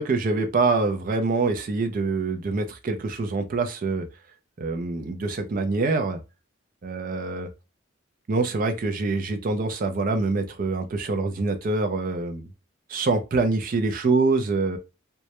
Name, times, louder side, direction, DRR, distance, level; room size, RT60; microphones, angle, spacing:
voice 1, 0.0-4.1 4.6-6.2 6.8-7.5 8.3-12.5 12.9-14.8, right 3 dB, 45° right, 0.4 m, -25 dB
2.2 x 2.0 x 2.8 m
head